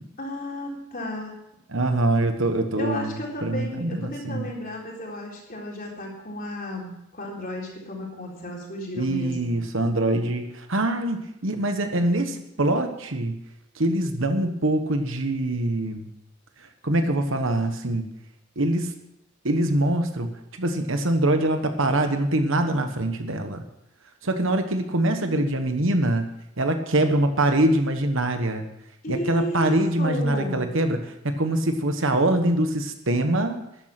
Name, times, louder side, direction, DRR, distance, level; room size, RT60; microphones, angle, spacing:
voice 1, 0.2-1.4 2.8-9.5 29.0-30.6, left 1 dB, 40° left, -2 dB, 3.9 m, -34 dB
voice 2, 1.7-3.1 3.4-4.5 9.0-13.4 13.7-16.1 16.6-18.1 18.6-19.0 19.4-23.6 24.2-26.3 26.6-28.7 29.1-33.6, right 1 dB, 60° right, 7 dB, 1.2 m, -24 dB
13.0 x 11.0 x 6.0 m, 0.81 s
head